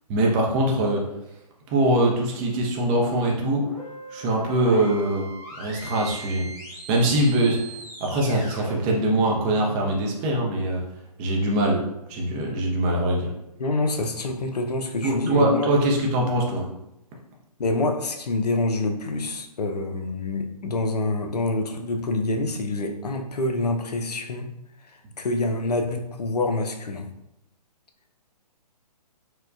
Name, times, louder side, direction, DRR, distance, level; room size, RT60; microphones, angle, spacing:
voice 1, 0.1-1.0 1.7-3.6 4.1-5.2 5.6-6.5 6.9-7.6 8.0-10.8 11.2-11.8 12.1-13.3 15.0-16.7, right 1 dB, 20° right, -1 dB, 0.5 m, -22 dB
sound 1, 2.8-9.9, right 2 dB, 20° left, 1.2 m, -39 dB
voice 2, 13.6-15.7 17.6-24.5 25.2-27.1, left 2 dB, 70° left, 4 dB, 0.6 m, -26 dB
4.2 x 2.2 x 2.4 m, 0.84 s
figure-of-eight pair, 130°, 21 cm